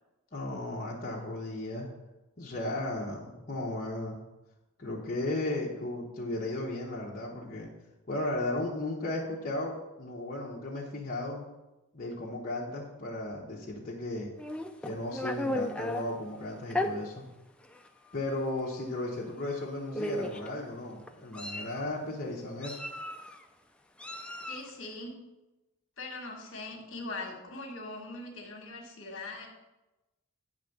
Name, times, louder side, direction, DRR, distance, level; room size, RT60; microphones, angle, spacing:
voice 1, 0.3-1.9 2.4-4.2 4.8-7.7 8.1-11.5 11.9-14.3 14.8-17.2 18.1-22.8, left 2 dB, 40° left, -5 dB, 1.0 m, -35 dB
Meow, 14.4-16.0 16.7-16.9 17.7-17.9 18.2-18.4 19.5-19.6 19.9-20.5 21.1-21.8 22.6-23.4 24.0-24.7, left 1 dB, 5° left, 0.3 m, -34 dB
voice 2, 24.5-25.2 26.0-29.5, left 2 dB, 60° left, 2 dB, 1.5 m, -41 dB
9.2 x 3.5 x 6.6 m, 1.0 s
head